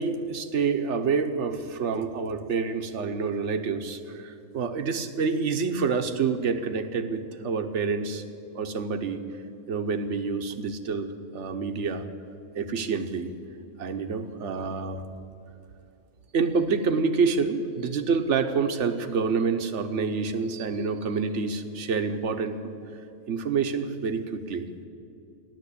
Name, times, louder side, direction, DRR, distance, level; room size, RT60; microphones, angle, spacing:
voice 1, 0.0-8.2 8.5-9.2 9.7-12.1 12.5-13.3 13.8-15.0 16.3-22.7 23.3-24.7, right 5 dB, 65° right, 8 dB, 1.3 m, -27 dB
15.0 x 11.0 x 8.4 m, 2.8 s
omnidirectional pair, 1.3 m